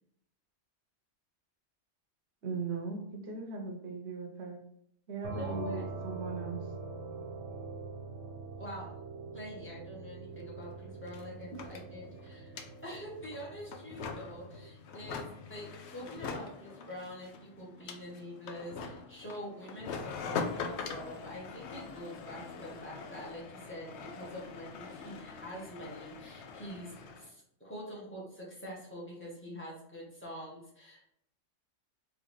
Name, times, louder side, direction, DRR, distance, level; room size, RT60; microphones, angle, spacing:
voice 1, 2.4-4.6 5.1-6.6, right 4 dB, 70° right, 3 dB, 1.0 m, -38 dB
sound 1, 5.2-14.7, right 3 dB, 85° right, 1.2 m, -44 dB
voice 2, 5.4-5.9 8.5-8.9 9.3-31.0, equal, 10° left, -5 dB, 1.3 m, -45 dB
sound 2, 10.4-10.5 10.7-27.3, left 5 dB, 70° left, 0.8 m, -43 dB
3.8 x 2.9 x 3.1 m, 0.73 s
omnidirectional pair, 1.2 m